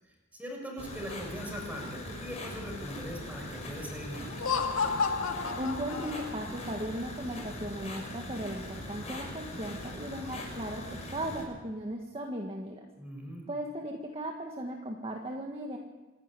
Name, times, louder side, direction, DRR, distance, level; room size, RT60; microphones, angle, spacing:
voice 1, 0.0-4.5 13.0-13.5, equal, 5° right, 0 dB, 6.3 m, -41 dB
sound 1, 0.8-11.4, left 1 dB, 30° left, 6.7 m, -41 dB
Laughter, 4.3-6.6, left 5 dB, 75° left, 2.0 m, -31 dB
voice 2, 5.6-12.9 13.5-15.8, right 1 dB, 30° right, 1 dB, 1.8 m, -37 dB
26.5 x 11.5 x 9.9 m, 1.2 s
head